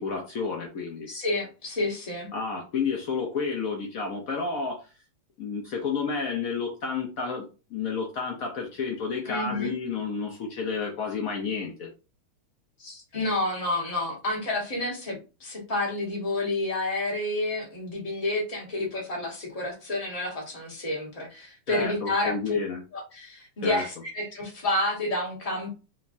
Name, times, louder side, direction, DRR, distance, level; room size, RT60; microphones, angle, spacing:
voice 1, 0.0-1.1 2.3-4.8 5.4-7.4 7.7-11.9 21.7-22.8 23.6-23.8, left 5 dB, 90° left, 1 dB, 0.7 m, -30 dB
voice 2, 1.1-2.3 9.3-9.7 12.8-22.6 22.9-25.7, left 2 dB, 25° left, -2 dB, 0.8 m, -30 dB
3.3 x 3.1 x 2.5 m, 0.32 s
omnidirectional pair, 2.4 m